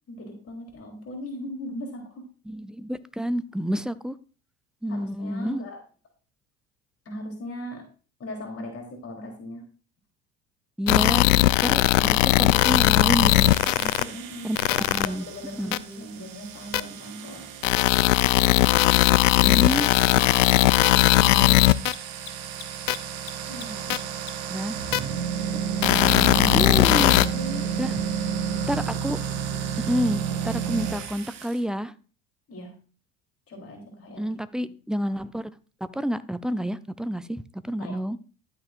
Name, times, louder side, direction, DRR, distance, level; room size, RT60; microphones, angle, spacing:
voice 1, 0.1-2.3 4.9-5.8 7.0-7.9 8.2-9.6 13.8-17.5 23.5-24.0 26.3-27.6 32.5-32.8 33.5-34.3 37.8-38.2, equal, 35° left, 3.3 m, -38 dB
voice 2, 2.5-4.2 4.8-5.6 10.8-11.3 11.6-13.5 14.1-14.2 14.4-15.3 15.6-15.8 19.4-19.9 21.2-21.7 24.5-24.8 26.6-27.1 27.8-27.9 28.7-29.2 29.9-31.9 34.2-35.5 35.9-38.2, equal, ahead, 0.4 m, -29 dB
sound 1, 10.9-14.0 14.6-15.1 15.7-15.8 16.7-16.8 17.6-21.9 22.9-23.0 23.9-24.0 24.9-25.0 25.8-27.3, left 17 dB, 70° left, 0.6 m, -19 dB
sound 2, 12.5-31.6, right 7 dB, 55° right, 1.5 m, -32 dB
Mechanisms, 15.9-16.0 19.0-24.6, left 14 dB, 55° left, 1.3 m, -42 dB
12.5 x 8.9 x 2.5 m
figure-of-eight pair, 65°, 39 cm